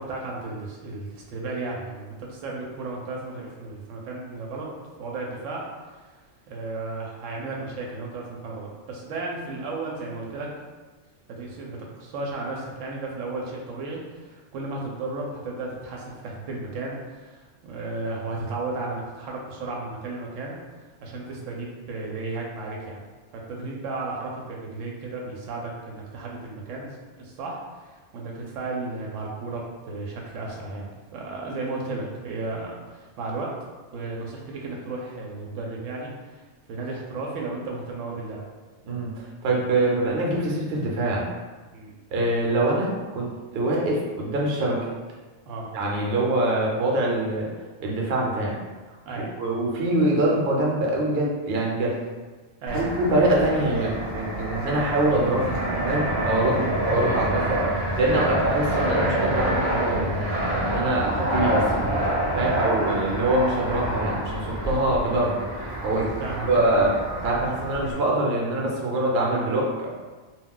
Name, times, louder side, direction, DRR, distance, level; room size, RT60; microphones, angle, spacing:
voice 1, 0.0-4.7 5.0-5.6 6.5-10.5 11.3-20.6 21.0-23.0 23.3-33.5 33.9-36.4 36.7-38.4 41.7-41.9 45.5-45.7 49.1-49.4 52.6-52.8 56.6-56.8 58.2-58.4 62.5-62.7 66.2-66.7, right 3 dB, 90° right, -2 dB, 0.9 m, -34 dB
voice 2, 38.9-41.2 42.1-44.8 45.7-47.5 47.8-48.5 49.2-52.0 52.7-55.6 55.8-57.6 58.0-61.7 62.3-65.4 65.8-66.1 66.5-66.9 67.2-69.9, right 1 dB, 60° right, -3 dB, 0.9 m, -24 dB
Fixed-wing aircraft airplane, 52.7-67.9, right 1 dB, 30° right, 0.4 m, -27 dB
2.3 x 2.2 x 3.7 m, 1.3 s
omnidirectional pair, 1.2 m